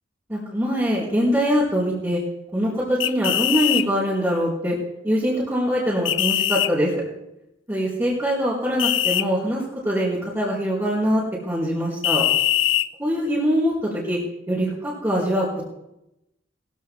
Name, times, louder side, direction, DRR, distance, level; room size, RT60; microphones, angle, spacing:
voice 1, 0.3-2.2 2.5-4.8 5.0-7.0 7.7-12.2 13.0-14.2 14.5-15.7, equal, 15° right, -8 dB, 4.5 m, -23 dB
sound 1, 3.0-3.9 6.1-6.7 8.8-9.2 12.0-12.9, left 12 dB, 85° left, 0.6 m, -21 dB
21.0 x 16.0 x 2.4 m, 0.86 s
head